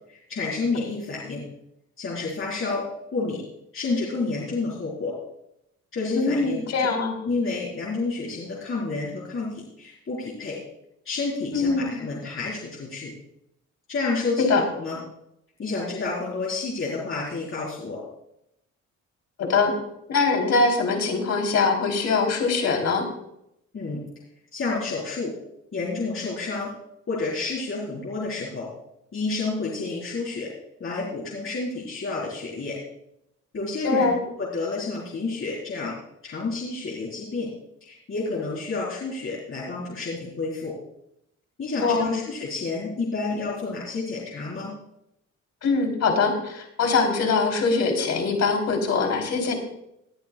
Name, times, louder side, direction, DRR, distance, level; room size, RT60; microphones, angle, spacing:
voice 1, 0.1-1.4 2.0-2.8 3.1-3.4 3.7-5.2 5.9-6.6 7.3-10.6 11.0-13.1 13.9-15.0 15.6-18.0 23.7-24.0 24.5-25.3 25.7-26.7 27.1-28.7 29.1-30.5 30.8-32.8 33.5-34.1 34.4-35.9 36.2-37.5 37.8-40.7 41.6-44.7, left 3 dB, 45° left, -6 dB, 4.0 m, -29 dB
voice 2, 6.1-7.2 11.5-11.9 14.4-14.6 19.4-19.7 20.1-23.0 33.8-34.2 41.8-42.1 45.6-49.5, left 4 dB, 60° left, 3 dB, 3.4 m, -22 dB
19.5 x 11.0 x 2.3 m, 0.81 s
cardioid pair, 90°, 30 cm